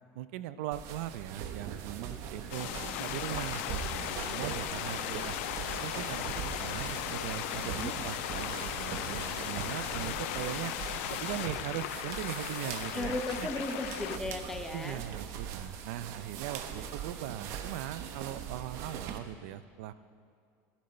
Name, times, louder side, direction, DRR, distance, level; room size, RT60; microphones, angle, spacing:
voice 1, 0.1-2.7 3.0-5.4 5.8-10.7 11.1-13.2 14.7-19.9, right 13 dB, 65° right, 14 dB, 0.5 m, -40 dB
sound 1, 0.7-19.2, right 8 dB, 45° right, 0.8 m, -41 dB
sound 2, 2.5-11.5, left 9 dB, 60° left, 0.9 m, -39 dB
voice 2, 2.5-3.1 7.6-8.0 12.9-15.0, left 2 dB, 5° left, 5 dB, 0.6 m, -37 dB
sound 3, 2.9-14.2, left 15 dB, 90° left, 0.3 m, -39 dB
15.0 x 12.0 x 4.4 m, 2.3 s
cardioid pair, 175°, 7 cm